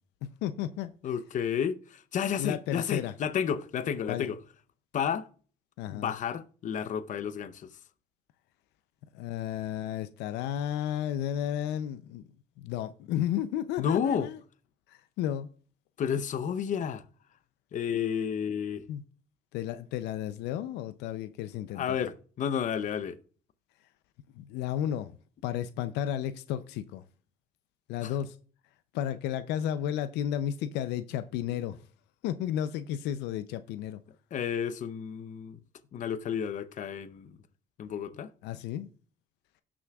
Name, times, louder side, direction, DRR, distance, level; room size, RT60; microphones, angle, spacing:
voice 1, 0.2-0.9 2.4-3.1 4.1-4.3 5.8-6.1 9.1-12.2 12.6-14.4 14.9-15.5 18.9-19.0 19.5-22.0 24.3-25.1 25.4-27.0 27.9-28.4 28.9-31.8 32.2-34.0 38.4-38.9, left 10 dB, 90° left, 0.5 m, -33 dB
voice 2, 1.0-4.4 4.9-5.3 5.9-7.7 13.8-14.3 16.0-17.0 17.7-18.8 21.7-23.2 28.0-28.2 34.3-35.6 35.9-37.4 37.8-38.3, left 8 dB, 50° left, 0.7 m, -31 dB
17.0 x 6.1 x 2.3 m
cardioid pair, 110°, 17 cm